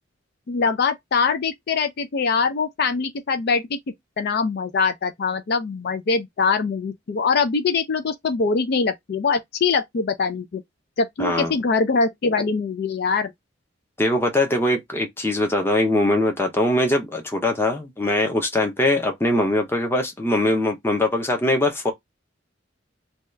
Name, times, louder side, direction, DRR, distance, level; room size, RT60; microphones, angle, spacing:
voice 1, 0.5-3.8 4.2-10.6 11.0-13.3, left 4 dB, 55° left, 0.4 m, -23 dB
voice 2, 11.2-11.5 14.0-21.9, left 1 dB, 10° left, 0.6 m, -22 dB
2.7 x 2.3 x 3.1 m
head